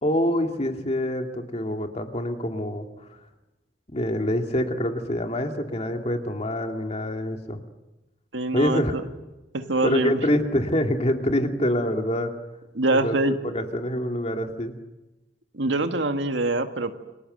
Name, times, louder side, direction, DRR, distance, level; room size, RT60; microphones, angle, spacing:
voice 1, 0.0-2.9 3.9-7.6 8.5-9.0 9.8-12.3 12.9-13.2 13.4-14.8, equal, 35° left, 5 dB, 2.4 m, -25 dB
voice 2, 8.3-9.0 9.5-10.2 12.8-13.3 15.5-17.0, right 2 dB, 85° right, 7 dB, 2.0 m, -24 dB
29.5 x 24.0 x 8.0 m, 1.0 s
head